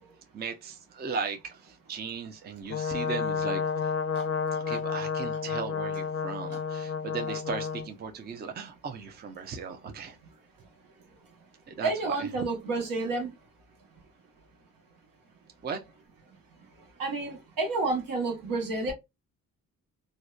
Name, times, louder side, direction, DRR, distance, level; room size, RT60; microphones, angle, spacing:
voice 1, 0.3-3.9 4.5-10.2 11.7-12.3 15.6-15.8, right 5 dB, 30° right, 0.5 m, -37 dB
Brass instrument, 2.7-7.9, left 6 dB, 40° left, 0.5 m, -31 dB
voice 2, 11.8-13.3 17.0-18.9, right 3 dB, 75° right, 1.1 m, -30 dB
2.7 x 2.1 x 2.2 m
cardioid pair, 90°, 34 cm